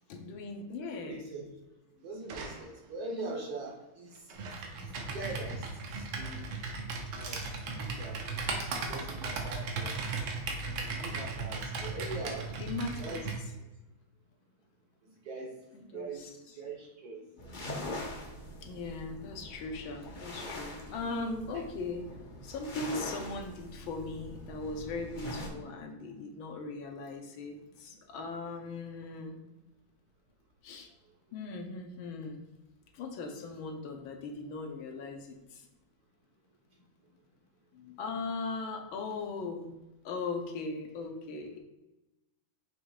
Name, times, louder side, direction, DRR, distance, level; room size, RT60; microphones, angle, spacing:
voice 1, 0.1-1.2 3.1-3.3 12.6-13.2 15.9-16.3 18.6-22.1 22.4-29.4 30.6-30.9 31.3-32.4 32.9-35.7 37.7-39.8 40.0-41.6, left 3 dB, 75° left, 4 dB, 1.6 m, -39 dB
voice 2, 1.0-1.5 2.0-6.5 7.1-7.4 7.7-8.2 8.9-9.9 10.7-13.2 15.2-16.3 16.6-17.3 21.5-21.6, right 3 dB, 55° right, -1 dB, 1.3 m, -42 dB
sound 1, 2.2-3.0 4.1-5.4 5.7-5.8 6.2-6.6 7.4-7.5, right 3 dB, 90° right, 1.8 m, -48 dB
Computer keyboard, 4.4-13.4, right 3 dB, 75° right, 1.7 m, -37 dB
sound 2, 17.4-25.5, left 1 dB, 45° left, 0.6 m, -43 dB
6.3 x 3.1 x 4.8 m, 1.0 s
omnidirectional pair, 2.3 m